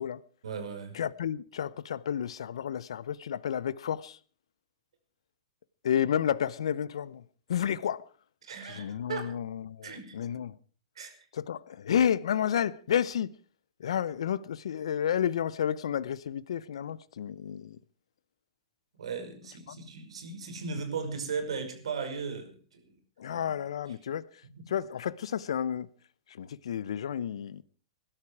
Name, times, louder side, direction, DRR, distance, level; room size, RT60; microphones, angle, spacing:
voice 1, 0.4-1.0 8.4-9.3 9.8-10.2 11.0-11.1 19.0-23.0 23.3-23.4 24.6-24.7, right 5 dB, 75° right, 5.7 m, -37 dB
voice 2, 0.9-4.2 5.8-7.2 7.5-8.1 8.6-10.6 11.3-13.3 13.8-17.8 19.7-19.8 23.2-25.9 26.3-27.6, left 9 dB, 70° left, 0.8 m, -31 dB
21.5 x 12.5 x 4.7 m
hypercardioid pair, 115°, 3 cm